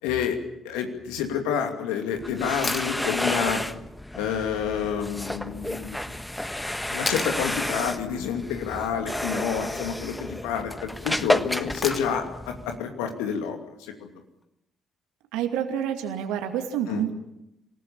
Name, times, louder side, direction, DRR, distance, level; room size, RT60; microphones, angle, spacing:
voice 1, 0.0-0.4 0.6-3.6 4.1-6.0 6.9-14.1 16.9-17.0, left 7 dB, 70° left, 5 dB, 2.7 m, -29 dB
sound 1, 2.1-12.8, left 1 dB, 10° left, 1.3 m, -31 dB
sound 2, 2.6-2.9 5.2-5.3 7.1-7.4 9.4-9.8 11.8-12.3 14.4-14.5, left 3 dB, 35° left, 3.0 m, -32 dB
voice 2, 15.3-17.1, right 9 dB, 70° right, 6 dB, 2.5 m, -28 dB
27.0 x 18.5 x 7.2 m, 0.87 s
figure-of-eight pair, 45°, 0 cm